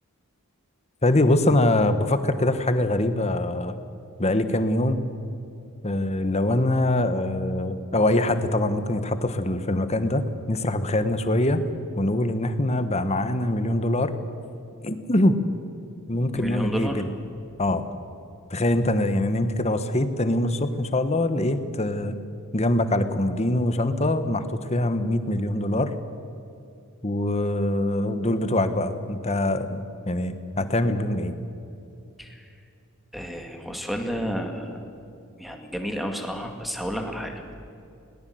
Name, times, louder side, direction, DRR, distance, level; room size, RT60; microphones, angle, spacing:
voice 1, 1.0-3.8 4.2-5.1 5.8-11.6 12.0-14.1 14.8-15.4 16.1-17.1 17.6-17.8 18.5-22.2 22.5-24.4 24.7-25.9 27.0-31.3, left 1 dB, 30° left, 10 dB, 1.2 m, -23 dB
voice 2, 16.3-17.0 32.2-32.4 33.1-34.8 35.4-37.3, equal, ahead, 4 dB, 2.1 m, -31 dB
20.5 x 19.0 x 7.9 m, 2.6 s
head